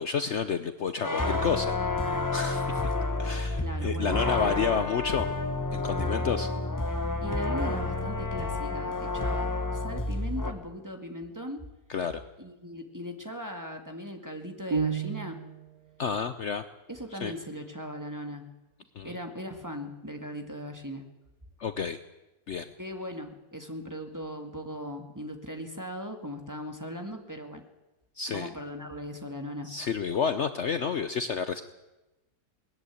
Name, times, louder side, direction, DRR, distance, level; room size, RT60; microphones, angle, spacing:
voice 1, 0.0-1.8 2.3-2.8 3.2-5.3 5.7-6.5 6.8-6.9 11.9-12.2 16.0-16.6 17.2-17.3 19.0-19.2 21.6-22.0 22.5-22.7 28.2-28.5 29.6-31.6, left 6 dB, 55° left, 10 dB, 1.0 m, -30 dB
sound 1, 1.0-10.5, left 2 dB, 15° left, 1.3 m, -29 dB
voice 2, 3.6-4.9 7.2-11.6 12.4-15.4 16.9-18.4 19.0-21.0 22.8-27.6 28.3-29.7, equal, 10° right, 4 dB, 2.1 m, -39 dB
sound 2, 14.7-15.7, right 5 dB, 80° right, 1.8 m, -30 dB
19.5 x 14.0 x 9.8 m, 1.0 s
omnidirectional pair, 1.6 m